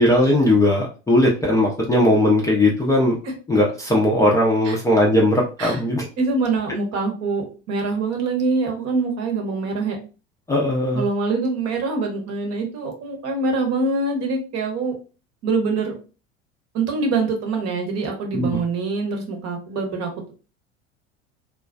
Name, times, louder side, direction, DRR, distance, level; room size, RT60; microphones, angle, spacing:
voice 1, 0.0-3.2 3.5-6.0 10.5-11.0 18.3-18.5, left 1 dB, 10° left, -3 dB, 0.5 m, -18 dB
voice 2, 6.2-10.0 10.9-14.9 15.4-15.9 16.7-20.1, right 3 dB, 45° right, 2 dB, 0.9 m, -24 dB
2.4 x 2.2 x 2.2 m, 0.34 s
figure-of-eight pair, 70°, 36 cm